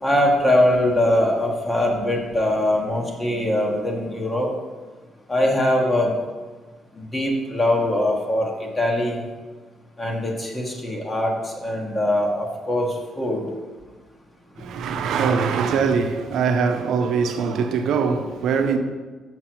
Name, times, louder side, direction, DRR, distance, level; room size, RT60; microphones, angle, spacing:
voice 1, 0.0-4.5 5.3-6.2 7.0-9.2 10.0-13.5, left 1 dB, 25° left, 1.3 m, -22 dB
voice 2, 14.6-18.8, right 5 dB, 80° right, 0.6 m, -22 dB
6.0 x 5.6 x 4.5 m
cardioid pair, 90°, 0 cm